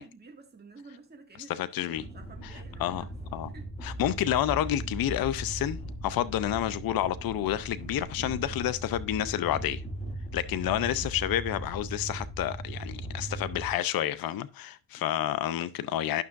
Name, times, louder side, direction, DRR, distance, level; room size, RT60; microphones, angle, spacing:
voice 1, 0.0-3.1 3.5-3.7 14.9-15.2, right 4 dB, 20° right, 1.9 m, -51 dB
voice 2, 1.5-2.0 2.4-2.5 2.8-3.0 3.3-3.5 3.8-9.8 10.3-16.2, left 12 dB, 55° left, 0.6 m, -29 dB
sound 1, 1.9-13.7, right 1 dB, 15° left, 2.4 m, -38 dB
12.0 x 5.9 x 2.5 m
cardioid pair, 90°, 43 cm